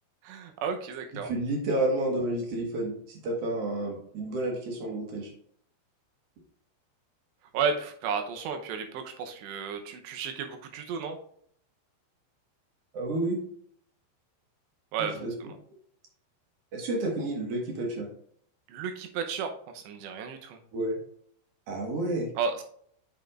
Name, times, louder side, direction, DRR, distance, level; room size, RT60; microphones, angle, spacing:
voice 1, 0.2-1.3 7.5-11.2 14.9-15.2 18.7-20.6 22.4-22.6, right 6 dB, 90° right, 5 dB, 3.1 m, -33 dB
voice 2, 1.2-5.3 12.9-13.4 15.0-15.3 16.7-18.1 20.7-21.0 21.7-22.3, right 1 dB, 60° right, 0 dB, 1.6 m, -30 dB
8.7 x 5.9 x 2.5 m, 0.63 s
omnidirectional pair, 4.9 m